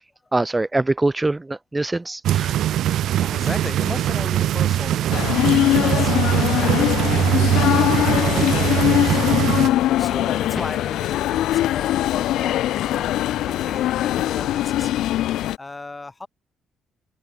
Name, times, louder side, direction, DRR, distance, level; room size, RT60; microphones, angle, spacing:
voice 1, 0.3-2.5, right 2 dB, 15° right, 1.1 m, -23 dB
sound 1, 2.2-9.7, right 12 dB, 80° right, 0.4 m, -21 dB
voice 2, 3.2-14.9 15.6-16.3, left 3 dB, 20° left, 4.1 m, -36 dB
sound 2, 5.1-15.6, left 14 dB, 85° left, 0.4 m, -21 dB
cardioid pair, 90°, 0 cm